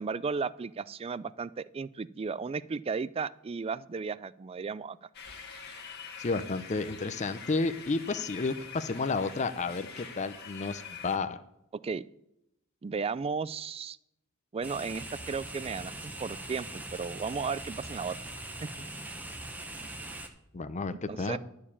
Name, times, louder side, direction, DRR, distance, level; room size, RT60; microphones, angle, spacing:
voice 1, 0.0-5.0 11.8-12.0 12.8-14.0 14.5-15.9 16.2-18.2 18.6-18.7 21.1-21.4, right 5 dB, 25° right, 17 dB, 0.3 m, -34 dB
sound 1, 5.1-11.2, left 6 dB, 50° left, 1.6 m, -45 dB
voice 2, 6.2-11.4 20.5-21.4, left 3 dB, 35° left, 11 dB, 0.5 m, -31 dB
sound 2, 14.6-20.3, right 2 dB, 10° right, 1.0 m, -41 dB
12.0 x 4.7 x 8.5 m, 0.82 s
head